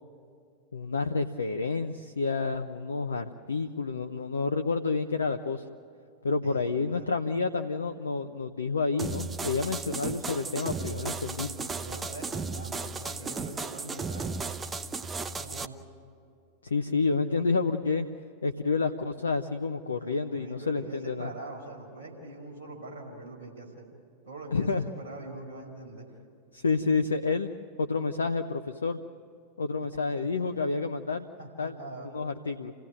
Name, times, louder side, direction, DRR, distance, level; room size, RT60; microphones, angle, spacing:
voice 1, 0.7-5.6 6.2-11.5 16.6-18.1 18.4-21.3 24.5-24.8 26.5-27.5 27.8-29.0 29.6-31.3 31.6-31.7 32.1-32.7, left 4 dB, 75° left, 6 dB, 0.8 m, -29 dB
voice 2, 6.4-7.1 11.4-14.4 15.4-15.7 20.0-23.9 24.2-26.1 29.9-30.5 31.4-32.1, right 2 dB, 60° right, 0 dB, 5.7 m, -43 dB
sound 1, 9.0-15.6, right 4 dB, 15° right, 0.9 m, -35 dB
28.5 x 16.5 x 9.3 m, 2.5 s
figure-of-eight pair, 90°, 0 cm